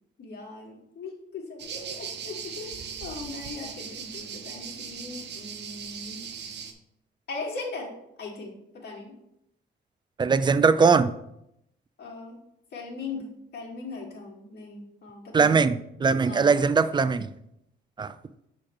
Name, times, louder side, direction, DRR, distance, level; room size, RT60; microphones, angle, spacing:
voice 1, 0.2-6.3 7.3-9.2 12.0-12.4 12.7-15.5 16.2-16.8, left 3 dB, 55° left, 2.0 m, -39 dB
sound 1, 1.6-6.7, right 7 dB, 60° right, 0.8 m, -39 dB
voice 2, 10.2-11.1 15.3-17.3 18.0-18.1, right 5 dB, 25° right, 0.4 m, -21 dB
6.3 x 3.3 x 5.8 m
cardioid pair, 90°, 20 cm